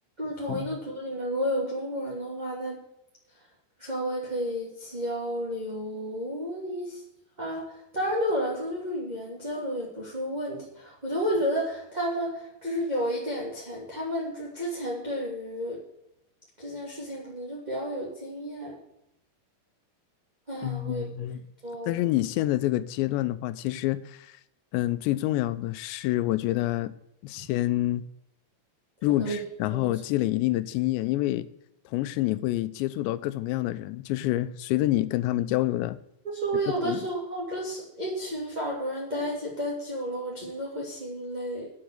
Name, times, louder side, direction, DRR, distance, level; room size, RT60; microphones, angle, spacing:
voice 1, 0.2-2.8 3.8-7.0 7.4-15.8 16.6-18.8 20.5-21.1 21.6-22.0 29.2-29.4 29.7-29.9 36.2-41.7, equal, 15° right, -4 dB, 1.9 m, -31 dB
voice 2, 20.6-21.4 21.9-24.3 24.7-26.9 27.2-28.0 29.0-31.5 31.9-36.0 36.8-37.0, left 16 dB, 85° left, 14 dB, 3.0 m, -27 dB
9.9 x 7.9 x 7.8 m, 0.81 s
omnidirectional pair, 5.0 m